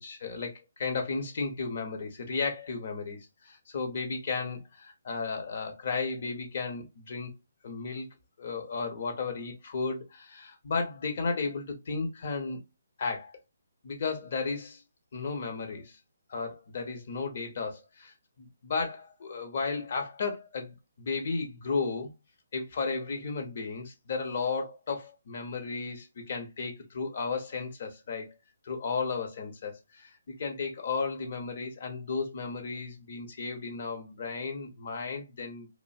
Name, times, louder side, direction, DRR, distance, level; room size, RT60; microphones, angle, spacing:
voice 1, 0.0-3.2 3.4-7.3 7.6-8.1 8.4-12.6 13.0-13.3 13.8-14.8 15.1-16.0 16.3-22.1 22.5-28.3 28.6-30.1 30.4-35.7, left 4 dB, 50° left, 0.8 m, -34 dB
2.6 x 2.1 x 2.4 m
figure-of-eight pair, 140°, 0 cm